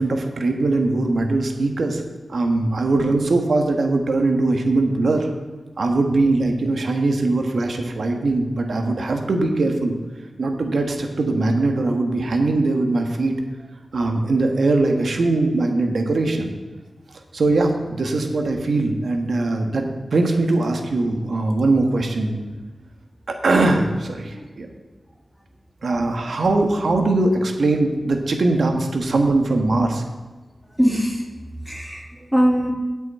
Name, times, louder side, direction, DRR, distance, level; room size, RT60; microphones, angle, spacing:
voice 1, 0.0-2.0 2.3-5.3 5.8-9.9 10.4-13.3 13.9-16.5 17.3-22.4 23.3-24.7 25.8-30.0, right 2 dB, 75° right, 4 dB, 1.4 m, -21 dB
voice 2, 30.8-31.3 31.7-32.7, equal, 5° right, -1 dB, 2.6 m, -20 dB
17.5 x 6.3 x 4.3 m, 1.3 s
cardioid pair, 55°, 0 cm